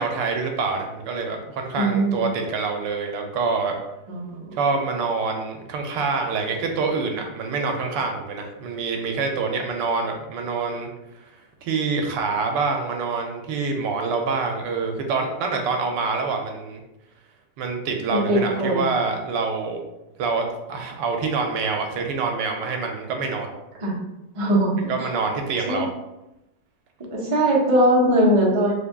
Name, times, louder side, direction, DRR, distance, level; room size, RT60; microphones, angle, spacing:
voice 1, 0.0-3.7 4.5-10.9 11.6-16.8 17.6-19.8 20.2-23.5 24.9-25.9, right 4 dB, 85° right, 3 dB, 1.2 m, -26 dB
voice 2, 1.8-2.1 4.1-4.6 18.1-18.9 23.8-23.9 24.4-24.8 25.7-25.8 27.0-28.7, right 1 dB, 35° right, -4 dB, 0.5 m, -20 dB
3.5 x 2.2 x 3.5 m, 0.94 s
omnidirectional pair, 1.9 m